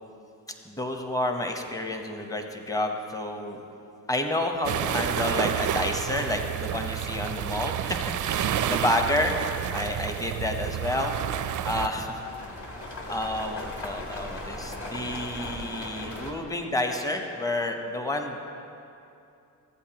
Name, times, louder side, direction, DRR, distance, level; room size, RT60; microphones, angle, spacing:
voice 1, 0.6-3.6 4.1-9.3 9.7-11.2 11.6-12.2 13.0-18.5, left 1 dB, 10° left, 4 dB, 0.9 m, -30 dB
sound 1, 4.6-11.9, right 10 dB, 50° right, 0.4 m, -29 dB
sound 2, 10.2-16.3, left 1 dB, 35° left, 1.5 m, -39 dB
14.5 x 8.4 x 2.9 m, 2.7 s
cardioid pair, 80°, 41 cm